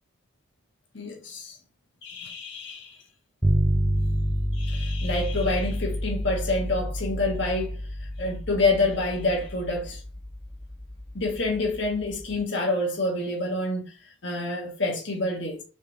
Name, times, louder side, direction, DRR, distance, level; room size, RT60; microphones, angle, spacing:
voice 1, 0.9-1.6 2.0-3.0 4.5-10.0 11.1-13.8 14.2-15.6, left 2 dB, 65° left, 1.4 m, -27 dB
sound 1, 3.4-12.4, equal, 5° right, 0.6 m, -29 dB
4.8 x 3.5 x 2.8 m
head